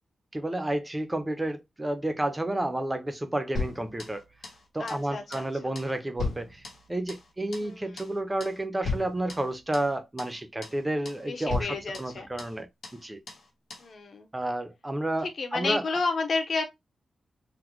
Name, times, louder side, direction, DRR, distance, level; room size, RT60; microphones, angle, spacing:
voice 1, 0.3-4.2 4.7-6.6 6.9-12.7 12.9-13.2 14.3-15.8, right 1 dB, 10° right, 0.5 m, -31 dB
sound 1, 3.6-4.6 4.9-5.1 5.3-5.5 5.8-7.3 7.5-7.7 8.0-8.2 8.4-8.6 8.8-9.9 10.2-10.4 10.6-10.8 11.1-11.2 11.5-12.6 12.8-13.0 13.3-13.5 13.7-13.9, left 3 dB, 70° left, 1.2 m, -36 dB
voice 2, 4.8-5.8 7.6-7.8 11.3-12.3 13.8-14.3 15.4-16.6, left 3 dB, 45° left, 0.7 m, -31 dB
3.8 x 2.1 x 3.0 m
wide cardioid pair, 165°, 0 cm